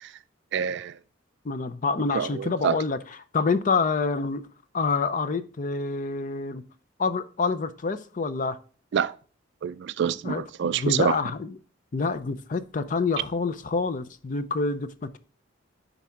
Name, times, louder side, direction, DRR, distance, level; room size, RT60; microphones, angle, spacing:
voice 1, 0.5-0.9 2.1-2.8 8.9-9.2 9.6-11.2, right 7 dB, 60° right, 0.3 m, -26 dB
voice 2, 1.4-3.0 3.3-4.5 4.7-6.6 7.0-8.6 10.2-11.6 11.9-15.2, left 4 dB, 40° left, 0.5 m, -27 dB
10.0 x 4.1 x 3.6 m
head